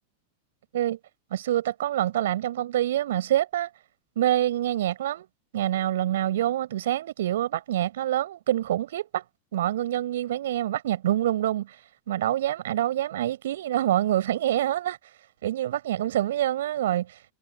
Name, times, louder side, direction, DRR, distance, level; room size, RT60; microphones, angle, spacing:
voice 1, 1.3-3.7 4.2-5.3 5.5-9.2 9.5-11.8 12.1-15.0 15.4-17.2, right 12 dB, 60° right, 6.2 m, -26 dB
figure-of-eight pair, 90°, 0 cm